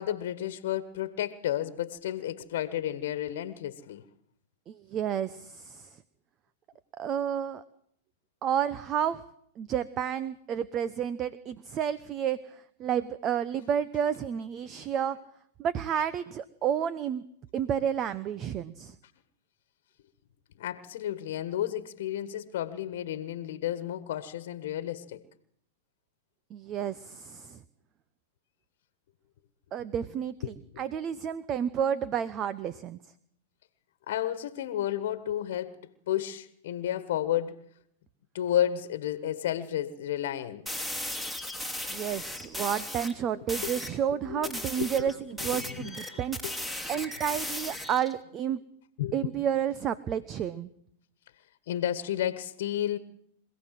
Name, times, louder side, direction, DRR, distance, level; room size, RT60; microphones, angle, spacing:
voice 1, 0.0-4.0 20.6-25.2 30.4-30.8 34.1-37.7 38.3-40.8 43.3-43.7 44.3-45.1 45.4-46.5 49.0-49.1 51.7-53.0, left 11 dB, 65° left, 1.4 m, -32 dB
voice 2, 4.7-5.9 7.0-7.6 8.4-9.2 9.6-12.4 12.8-15.2 15.6-17.2 17.5-18.9 26.5-27.6 29.7-30.3 30.8-33.0 41.9-46.4 46.9-48.6 49.1-50.7, right 9 dB, 35° right, 0.9 m, -30 dB
sound 1, 40.7-43.1 43.5-44.0 44.4-48.1, left 1 dB, 10° right, 3.1 m, -36 dB
26.0 x 16.5 x 7.7 m
hypercardioid pair, 115°, 0 cm